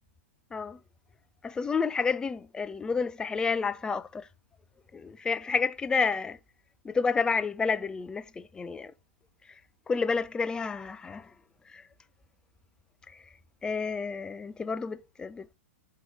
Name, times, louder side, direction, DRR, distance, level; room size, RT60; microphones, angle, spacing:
voice 1, 1.4-4.3 4.9-6.4 6.8-8.9 9.4-9.6 9.9-11.3 11.7-11.9 13.1-13.3 13.6-15.5, left 5 dB, 10° left, 0.4 m, -30 dB
7.8 x 4.6 x 6.0 m
figure-of-eight pair, 105°, 7 cm